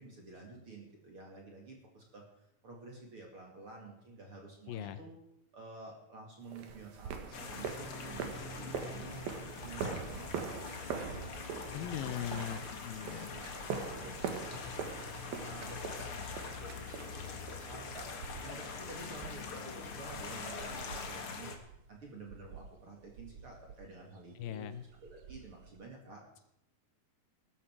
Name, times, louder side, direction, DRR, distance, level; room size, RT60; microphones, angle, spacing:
voice 1, 0.0-5.1 5.5-12.3 13.1-18.1 18.4-26.4, right 2 dB, 40° right, 0 dB, 2.8 m, -51 dB
voice 2, 4.7-5.0 11.7-13.4 24.4-24.8, left 10 dB, 80° left, 12 dB, 2.5 m, -40 dB
sound 1, 6.5-17.7, right 6 dB, 80° right, 3.3 m, -42 dB
sound 2, 6.7-25.8, right 6 dB, 65° right, 2.2 m, -54 dB
sound 3, 7.3-21.6, left 5 dB, 45° left, 2.1 m, -43 dB
18.0 x 13.5 x 4.7 m, 0.80 s
omnidirectional pair, 4.2 m